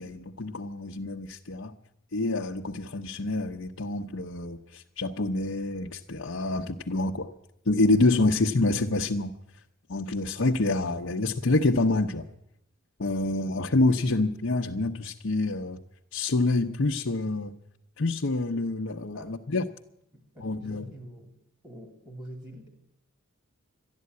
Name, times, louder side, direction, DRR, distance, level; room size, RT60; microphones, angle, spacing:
voice 1, 0.0-1.7 2.1-7.3 7.7-9.3 9.9-12.2 13.0-15.8 16.1-17.5 18.0-19.6 20.4-20.9, left 2 dB, 60° left, -1 dB, 0.8 m, -27 dB
voice 2, 20.1-22.7, right 1 dB, 20° right, 4 dB, 2.5 m, -46 dB
12.5 x 11.5 x 9.4 m, 0.77 s
head